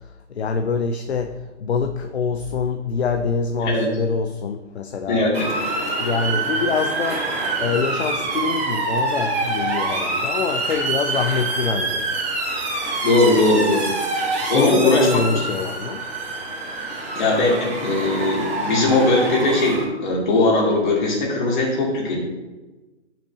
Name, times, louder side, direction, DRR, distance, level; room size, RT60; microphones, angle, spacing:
voice 1, 0.3-5.2 6.0-12.1 12.9-13.1 14.4-16.1, left 5 dB, 60° left, 6 dB, 0.6 m, -25 dB
voice 2, 5.1-5.5 13.0-13.9 14.5-15.3 17.1-22.2, left 2 dB, 40° left, -3 dB, 2.5 m, -19 dB
Motor vehicle (road) / Siren, 5.3-19.8, right 2 dB, 20° right, 2.7 m, -26 dB
10.0 x 5.9 x 2.8 m, 1.2 s
figure-of-eight pair, 130°, 36 cm